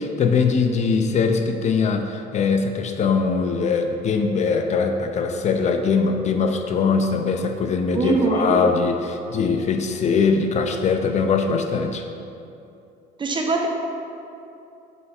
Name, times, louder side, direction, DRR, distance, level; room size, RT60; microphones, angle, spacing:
voice 1, 0.0-12.1, left 5 dB, 45° left, 5 dB, 0.4 m, -21 dB
voice 2, 7.9-8.6 13.2-13.7, right 4 dB, 30° right, 1 dB, 0.7 m, -22 dB
5.5 x 4.4 x 4.1 m, 2.7 s
cardioid pair, 110°, 17 cm